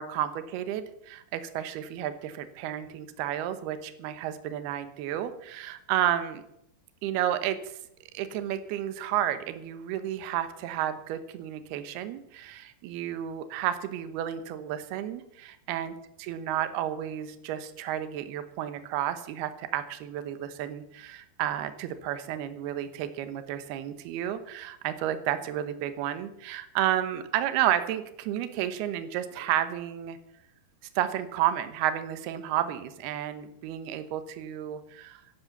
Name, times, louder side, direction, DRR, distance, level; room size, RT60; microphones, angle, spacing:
voice 1, 0.0-6.4 7.0-7.8 8.1-15.9 16.2-30.2 31.0-35.2, right 11 dB, 75° right, 11 dB, 2.9 m, -31 dB
11.5 x 11.0 x 7.1 m, 0.77 s
omnidirectional pair, 4.8 m